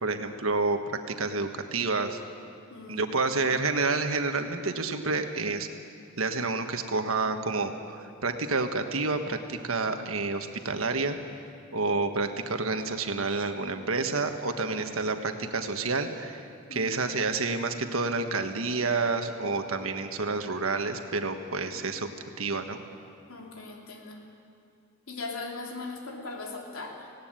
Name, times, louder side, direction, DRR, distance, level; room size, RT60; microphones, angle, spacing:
voice 1, 0.0-2.2 2.9-5.7 6.2-11.2 11.7-22.1 22.4-22.8, right 3 dB, 75° right, 7 dB, 1.4 m, -29 dB
voice 2, 2.7-3.1 16.7-16.9 23.3-24.2 25.1-27.1, left 3 dB, 85° left, 0 dB, 3.2 m, -39 dB
18.5 x 17.0 x 8.9 m, 2.3 s
head